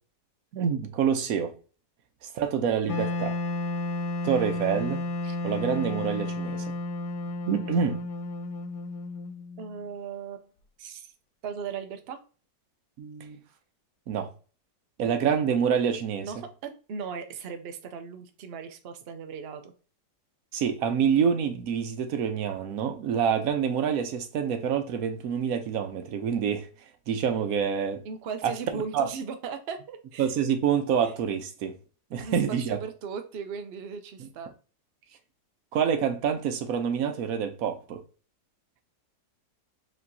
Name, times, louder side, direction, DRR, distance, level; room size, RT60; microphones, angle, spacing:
voice 1, 0.5-1.5 2.2-3.3 4.2-5.0 5.4-6.7 7.5-8.0 13.0-13.4 14.1-14.3 15.0-16.4 20.5-26.7 27.1-28.0 28.4-28.5 28.9-29.1 30.2-31.8 32.1-32.8 34.2-34.3 35.7-38.0, right 7 dB, 65° right, 1.0 m, -27 dB
Wind instrument woodwind instrument, 2.9-9.8, left 2 dB, 75° left, 1.1 m, -32 dB
voice 2, 9.6-10.5 10.8-11.1 11.4-12.2 15.0-15.4 16.2-19.7 28.0-30.3 31.0-31.1 32.2-34.5, right 6 dB, 85° right, 0.5 m, -37 dB
4.8 x 3.4 x 2.7 m
omnidirectional pair, 1.9 m